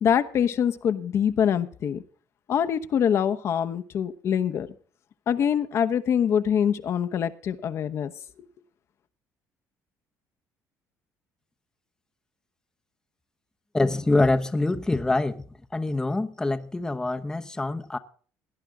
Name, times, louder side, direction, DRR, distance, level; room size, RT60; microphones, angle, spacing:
voice 1, 0.0-2.0 2.5-4.7 5.3-8.1, left 8 dB, 50° left, 1.0 m, -24 dB
voice 2, 13.7-15.5 15.7-18.0, left 2 dB, 10° left, 0.9 m, -25 dB
18.0 x 11.0 x 3.7 m
cardioid pair, 130°, 6 cm